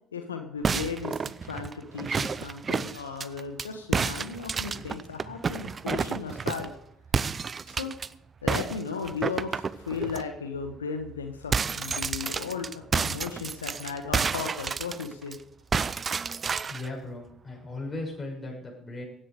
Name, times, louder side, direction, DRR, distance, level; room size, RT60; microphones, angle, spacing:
voice 1, 0.1-1.2 1.5-6.7 7.7-7.9 8.4-15.4, left 5 dB, 85° left, 6 dB, 1.3 m, -35 dB
sound 1, 0.6-3.7 3.9-6.7 7.1-8.1 8.5-10.2 10.6-10.8 11.1-15.4 15.7-16.9, right 5 dB, 35° right, 0.6 m, -30 dB
voice 2, 16.5-19.0, left 2 dB, 20° left, -2 dB, 6.3 m, -37 dB
16.0 x 10.5 x 5.1 m, 0.68 s
hypercardioid pair, 55°, 0 cm